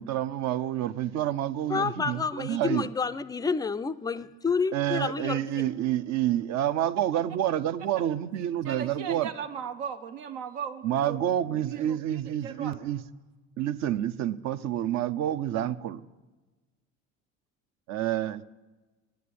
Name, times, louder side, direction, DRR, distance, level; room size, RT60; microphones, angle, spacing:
voice 1, 0.0-2.9 4.7-9.3 10.8-13.0 13.6-16.0 17.9-18.4, right 11 dB, 50° right, 0.6 m, -28 dB
voice 2, 1.7-5.7, left 5 dB, 10° left, 0.3 m, -29 dB
voice 3, 8.6-11.2 11.5-12.8, right 7 dB, 80° right, 0.9 m, -38 dB
9.5 x 9.3 x 8.4 m
supercardioid pair, 95°, 34 cm